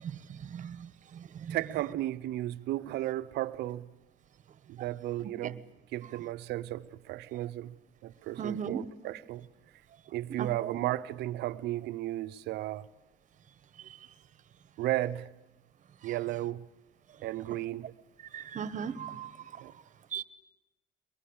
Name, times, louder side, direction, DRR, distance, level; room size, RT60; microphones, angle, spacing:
voice 1, 0.0-1.6 5.4-5.5 8.4-8.8 10.4-10.8 18.3-19.6 20.1-20.2, right 7 dB, 50° right, 1.2 m, -38 dB
voice 2, 1.5-3.9 4.7-5.6 5.9-7.7 8.0-9.5 10.1-12.9 14.8-15.3 16.0-16.7 17.2-17.9 19.6-19.7, right 15 dB, 80° right, 0.8 m, -34 dB
23.0 x 21.5 x 8.8 m
cardioid pair, 110°, 17 cm